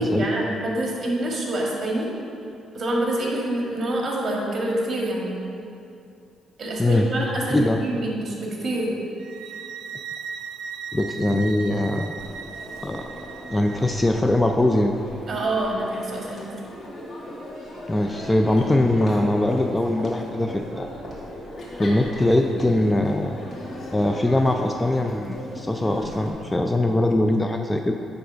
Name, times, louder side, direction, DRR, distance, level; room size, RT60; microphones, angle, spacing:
voice 1, 0.0-2.1 2.7-5.4 6.6-9.0 15.3-16.5, right 1 dB, 40° right, -3 dB, 1.8 m, -26 dB
sound 1, 9.2-14.1, right 6 dB, 75° right, 0.4 m, -37 dB
voice 2, 10.9-12.1 12.8-13.1 13.5-14.9 17.9-20.9 21.7-23.4 23.9-27.9, left 1 dB, 15° left, 4 dB, 0.4 m, -22 dB
Crowd, 12.2-26.3, left 1 dB, 50° left, 1.8 m, -38 dB
9.4 x 3.5 x 5.1 m, 2.5 s
cardioid pair, 90°, 0 cm